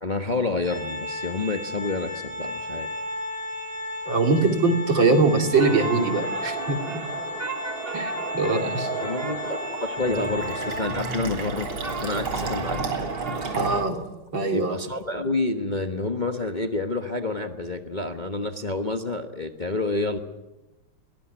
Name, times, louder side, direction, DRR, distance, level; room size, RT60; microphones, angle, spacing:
voice 1, 0.0-2.9 9.0-11.7 12.0-12.9 14.5-20.2, left 3 dB, 30° left, 6 dB, 1.1 m, -28 dB
Organ, 0.6-11.3, left 1 dB, 50° right, 4.6 m, -34 dB
voice 2, 4.1-7.0 7.9-8.9 13.6-14.0 14.3-14.8, right 3 dB, 65° right, 5 dB, 3.4 m, -22 dB
sound 1, 5.5-13.8, right 4 dB, 30° right, 1.4 m, -33 dB
Fill (with liquid), 10.0-14.0, right 3 dB, 85° right, 4.2 m, -32 dB
22.0 x 19.5 x 9.5 m, 1.0 s
omnidirectional pair, 2.2 m